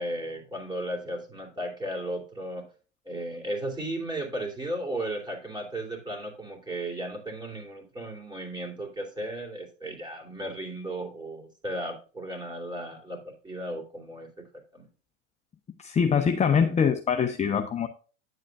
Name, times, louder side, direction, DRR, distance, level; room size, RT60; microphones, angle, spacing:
voice 1, 0.0-2.7 3.0-14.3 14.7-14.9, right 1 dB, 10° right, 2 dB, 3.2 m, -35 dB
voice 2, 15.8-17.9, left 6 dB, 20° left, 6 dB, 0.7 m, -23 dB
9.9 x 7.5 x 2.4 m, 0.36 s
hypercardioid pair, 90°, 37 cm